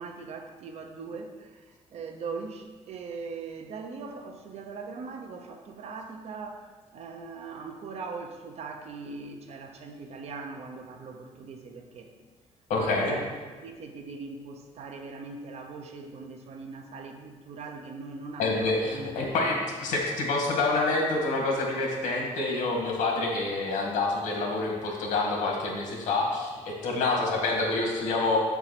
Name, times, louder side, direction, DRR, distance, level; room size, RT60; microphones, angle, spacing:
voice 1, 0.0-12.1 12.7-19.1 19.9-20.0, right 4 dB, 55° right, 4 dB, 0.9 m, -40 dB
voice 2, 12.7-13.1 18.4-28.4, left 3 dB, 75° left, 0 dB, 2.0 m, -27 dB
8.2 x 4.7 x 5.9 m, 1.4 s
cardioid pair, 145°, 13 cm